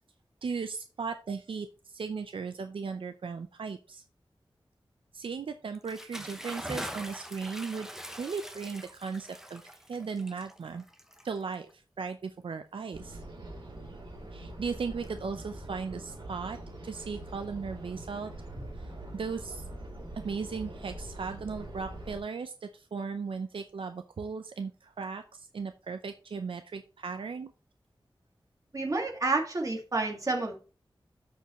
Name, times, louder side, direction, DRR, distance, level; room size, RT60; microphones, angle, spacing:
voice 1, 0.4-4.0 5.1-7.9 8.2-9.6 9.9-10.8 11.2-13.2 14.3-16.6 16.8-18.3 18.8-19.6 20.1-27.5, right 5 dB, 80° right, 8 dB, 0.5 m, -37 dB
Bathtub (filling or washing) / Splash splatter, 5.7-11.7, equal, 5° right, 0.8 m, -43 dB
sound 1, 12.9-22.2, right 1 dB, 60° right, 2.6 m, -43 dB
voice 2, 28.7-30.6, right 3 dB, 40° right, 1 dB, 1.8 m, -30 dB
13.0 x 4.5 x 3.0 m, 0.35 s
wide cardioid pair, 90°, 9 cm